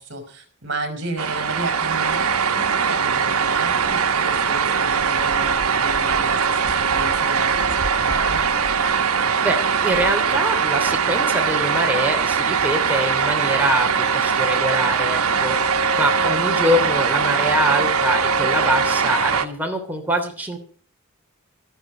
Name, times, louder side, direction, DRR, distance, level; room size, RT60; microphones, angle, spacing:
voice 1, 0.0-8.4, right 2 dB, 55° right, 7 dB, 4.8 m, -32 dB
sound 1, 1.2-19.5, right 6 dB, 75° right, 1.4 m, -21 dB
voice 2, 9.4-20.6, right 1 dB, 10° right, 2 dB, 3.1 m, -24 dB
13.5 x 13.0 x 6.2 m, 0.42 s
head